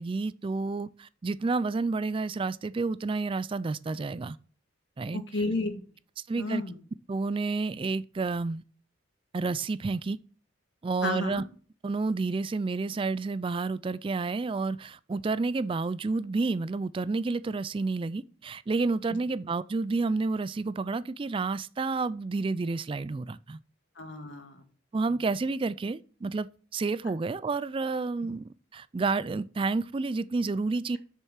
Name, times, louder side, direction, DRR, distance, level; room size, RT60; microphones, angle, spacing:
voice 1, 0.0-4.4 5.0-5.2 6.3-6.6 7.1-8.6 9.3-10.2 10.8-11.4 11.8-23.6 24.9-31.0, right 3 dB, 25° right, 0.3 m, -30 dB
voice 2, 5.1-5.8 6.4-6.8 11.0-11.4 24.0-24.6, left 2 dB, 65° left, 1.9 m, -31 dB
7.4 x 6.6 x 6.4 m
head